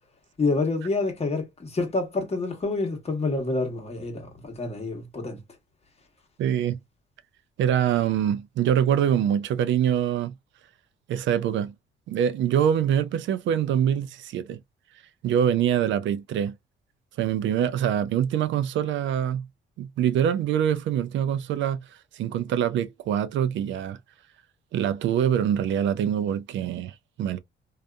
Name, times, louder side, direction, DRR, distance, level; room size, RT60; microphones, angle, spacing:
voice 1, 0.4-5.4, left 3 dB, 30° left, 1.1 m, -28 dB
voice 2, 6.4-6.8 7.6-10.3 11.1-11.7 12.1-14.6 15.2-16.5 17.2-19.5 19.8-21.8 22.1-24.0 24.7-27.4, right 9 dB, 70° right, 0.4 m, -24 dB
2.6 x 2.4 x 2.2 m
cardioid pair, 90°, 20 cm